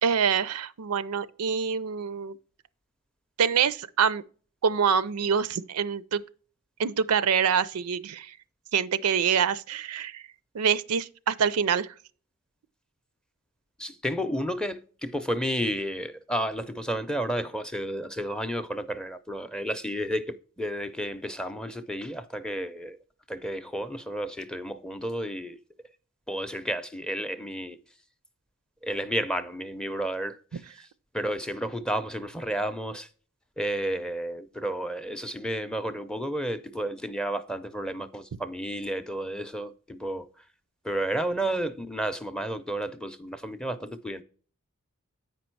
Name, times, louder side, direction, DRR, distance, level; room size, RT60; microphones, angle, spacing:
voice 1, 0.0-2.4 3.4-4.2 4.6-6.2 6.8-8.3 8.7-10.2 10.5-11.9, right 7 dB, 90° right, 0.5 m, -25 dB
voice 2, 13.8-23.0 23.3-25.6 26.3-27.8 28.8-30.6 31.1-33.1 33.6-40.3 40.8-44.2, equal, 5° left, 0.5 m, -32 dB
8.2 x 5.3 x 4.5 m
head